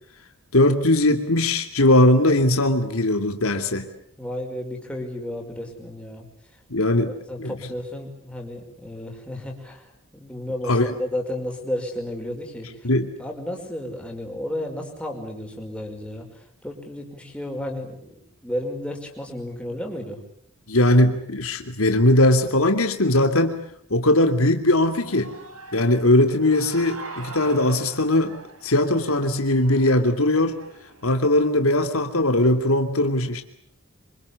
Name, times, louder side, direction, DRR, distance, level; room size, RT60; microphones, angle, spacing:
voice 1, 0.5-3.9 6.7-7.1 7.4-7.5 10.7-10.9 12.8-13.1 20.7-23.6 23.9-25.3 25.7-28.3 28.6-30.6 31.0-33.4, left 1 dB, 80° left, 6 dB, 2.9 m, -19 dB
voice 2, 4.2-6.3 6.5-6.6 7.0-12.9 13.2-20.2, left 1 dB, 5° left, 1 dB, 5.4 m, -33 dB
Human voice / Cheering, 24.7-31.3, right 3 dB, 90° right, 5.8 m, -43 dB
26.5 x 25.5 x 8.4 m, 0.65 s
head